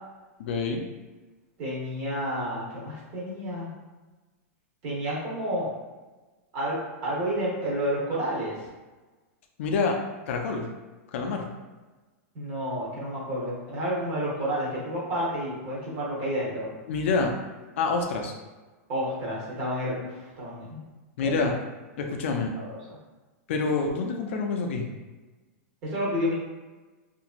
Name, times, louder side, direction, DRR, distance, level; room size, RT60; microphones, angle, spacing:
voice 1, 0.4-0.8 9.6-10.0 10.3-10.7 11.1-11.5 16.9-17.3 17.8-18.3 21.2-21.5 22.0-22.5 23.5-24.9, left 4 dB, 55° left, 3 dB, 0.4 m, -27 dB
voice 2, 1.6-3.7 4.8-5.7 6.5-8.6 12.3-16.7 18.9-20.8 21.2-21.5 22.0-22.1 22.6-22.7 25.8-26.3, equal, 35° right, -5 dB, 0.9 m, -30 dB
2.9 x 2.5 x 2.4 m, 1.2 s
supercardioid pair, 170°, 8 cm